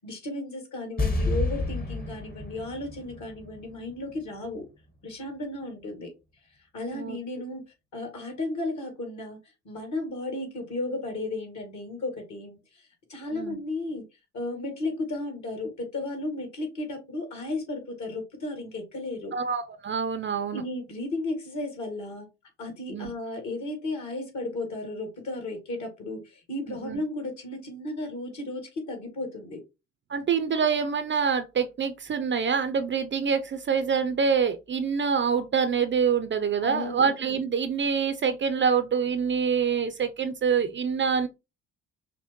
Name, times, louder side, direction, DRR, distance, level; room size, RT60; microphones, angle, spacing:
voice 1, 0.0-4.7 5.0-6.1 6.7-7.6 7.9-9.4 9.7-12.6 13.1-14.0 14.3-19.3 20.5-22.3 22.6-29.6 36.6-37.1, left 2 dB, 50° left, 2.1 m, -34 dB
sound 1, 1.0-4.2 4.4-4.5, left 2 dB, 25° left, 1.2 m, -30 dB
voice 2, 19.3-20.6 22.9-23.1 26.8-27.0 30.1-41.3, right 6 dB, 30° right, 0.6 m, -26 dB
5.7 x 2.1 x 2.9 m
hypercardioid pair, 50°, 36 cm